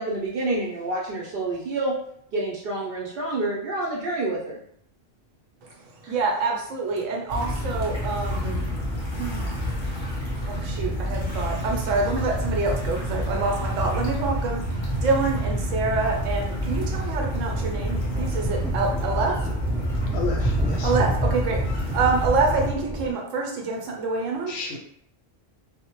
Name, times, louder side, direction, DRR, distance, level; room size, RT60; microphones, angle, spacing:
voice 1, 0.0-1.9 2.3-4.6 6.0-6.1, right 2 dB, 65° right, -3 dB, 0.6 m, -28 dB
voice 2, 5.6-20.1 20.8-24.6, right 3 dB, 85° right, 1 dB, 0.9 m, -27 dB
sound 1, 7.3-22.7, equal, 30° left, 0.6 m, -27 dB
sound 2, 14.8-23.1, right 2 dB, 5° right, 0.8 m, -37 dB
voice 3, 20.1-20.9 24.5-24.8, left 4 dB, 65° left, 1 dB, 0.7 m, -31 dB
2.1 x 2.1 x 2.9 m, 0.70 s
omnidirectional pair, 1.3 m